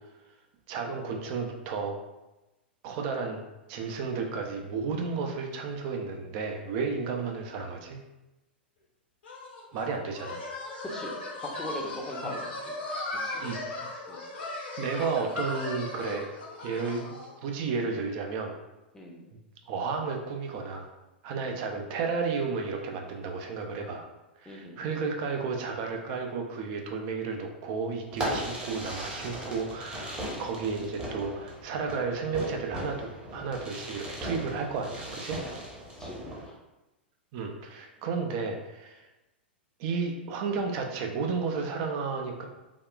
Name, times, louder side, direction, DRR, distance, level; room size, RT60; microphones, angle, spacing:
voice 1, 0.7-2.0 2.8-8.0 9.7-10.4 12.2-12.4 13.4-13.6 14.8-16.3 16.6-18.5 19.7-20.9 21.2-24.1 24.4-35.4 37.3-39.1 39.8-42.5, right 5 dB, 45° right, 2 dB, 0.5 m, -32 dB
sound 1, 9.2-17.3, left 2 dB, 75° left, 0.9 m, -37 dB
voice 2, 11.4-13.6 14.1-14.3 18.9-19.2 21.3-21.5 24.5-24.9 36.0-36.6, equal, 10° left, -1 dB, 0.6 m, -42 dB
Fireworks, 28.1-36.5, equal, 20° right, 0.9 m, -38 dB
3.4 x 2.3 x 2.3 m, 1.0 s
figure-of-eight pair, 100°, 6 cm